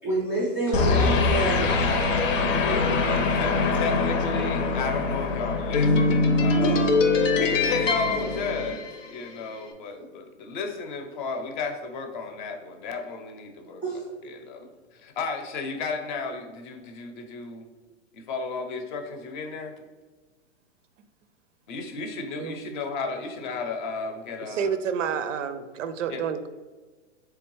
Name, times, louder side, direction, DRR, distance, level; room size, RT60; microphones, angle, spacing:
voice 1, 0.0-2.0 2.4-2.9 6.6-7.5 13.8-14.0, right 1 dB, 5° right, -5 dB, 0.3 m, -29 dB
sound 1, 0.7-9.3, left 3 dB, 85° left, 0.7 m, -23 dB
voice 2, 2.6-7.0 7.4-13.8 14.2-17.7 18.1-19.7 21.7-24.7 26.1-26.2, left 4 dB, 40° left, 5 dB, 0.6 m, -33 dB
voice 3, 24.4-26.5, right 7 dB, 90° right, 11 dB, 0.5 m, -29 dB
3.7 x 3.3 x 3.1 m, 1.4 s
hypercardioid pair, 145°, 37 cm